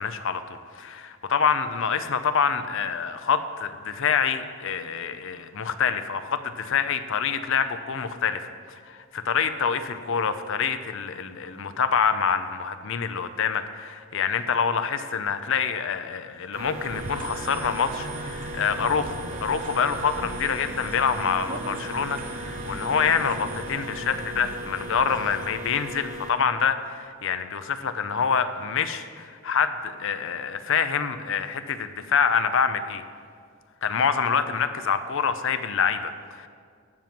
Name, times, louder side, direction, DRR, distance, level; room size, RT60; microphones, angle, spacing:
voice 1, 0.0-33.0 33.8-36.5, left 6 dB, 60° left, 11 dB, 0.6 m, -26 dB
sound 1, 16.5-26.3, equal, 65° right, 1.8 m, -37 dB
sound 2, 16.9-25.5, right 3 dB, 40° right, 0.4 m, -39 dB
12.0 x 7.7 x 5.9 m, 2.1 s
head